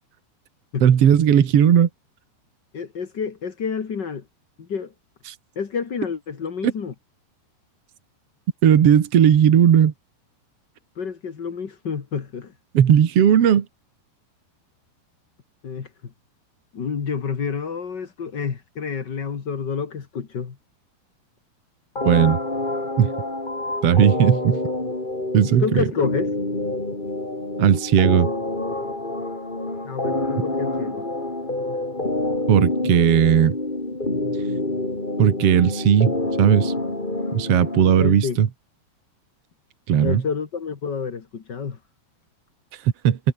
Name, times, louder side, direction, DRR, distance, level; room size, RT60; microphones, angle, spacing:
voice 1, 0.8-1.9 5.3-5.4 8.6-9.9 12.7-13.6 22.0-22.4 23.0-23.1 23.8-24.6 25.3-25.8 27.6-28.3 32.5-33.5 35.2-36.7 37.3-38.5 39.9-40.2 42.7-43.2, right 9 dB, 55° right, 1.7 m, -16 dB
voice 2, 2.7-4.2 4.6-4.9 5.5-6.9 10.9-12.5 15.6-16.1 16.7-20.6 25.4-26.3 29.8-31.1 37.8-38.4 40.0-41.8, left 6 dB, 60° left, 1.1 m, -29 dB
sound 1, 22.0-38.0, left 2 dB, 10° left, 3.4 m, -27 dB
omnidirectional pair, 5.1 m